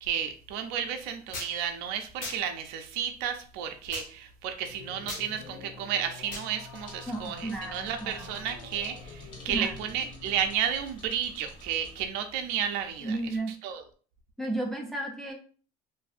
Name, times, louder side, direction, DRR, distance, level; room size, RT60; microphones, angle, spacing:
voice 1, 0.0-13.2 13.6-13.8, right 8 dB, 75° right, 6 dB, 0.5 m, -32 dB
sound 1, 1.3-1.5 2.2-2.4 3.9-4.1 5.1-5.2 6.3-6.5, left 2 dB, 60° left, 1.3 m, -37 dB
sound 2, 4.6-10.6, left 4 dB, 80° left, 0.7 m, -47 dB
sound 3, 6.7-12.1, left 1 dB, 30° left, 0.9 m, -50 dB
voice 2, 7.1-8.3 9.5-9.8 13.0-13.5 14.4-15.3, right 2 dB, ahead, -1 dB, 0.4 m, -33 dB
2.6 x 2.6 x 2.4 m, 0.41 s
cardioid pair, 140°, 16 cm